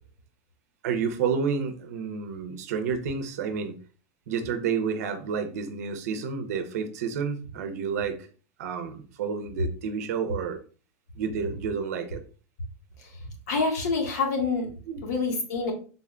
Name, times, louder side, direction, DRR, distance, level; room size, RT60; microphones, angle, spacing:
voice 1, 0.8-3.8 4.3-8.2 8.6-10.6 11.2-12.2 14.9-15.0, right 6 dB, 70° right, 8 dB, 0.7 m, -30 dB
voice 2, 13.5-14.7 15.0-15.7, left 4 dB, 80° left, 2 dB, 1.3 m, -26 dB
3.9 x 2.2 x 3.6 m, 0.39 s
supercardioid pair, 180°, 9 cm